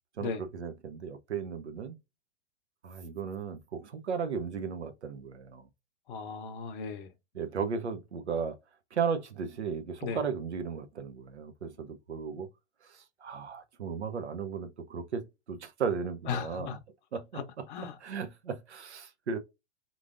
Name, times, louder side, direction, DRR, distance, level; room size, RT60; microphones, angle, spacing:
voice 1, 0.2-2.0 2.8-5.7 7.3-8.6 8.9-12.5 12.8-16.8 17.1-17.6 18.0-19.4, right 6 dB, 75° right, 0.8 m, -35 dB
voice 2, 6.1-7.1 10.0-10.2 16.3-16.8 17.3-17.4 17.7-18.0, left 6 dB, 50° left, 0.7 m, -36 dB
3.8 x 3.1 x 2.5 m
figure-of-eight pair, 110°, 34 cm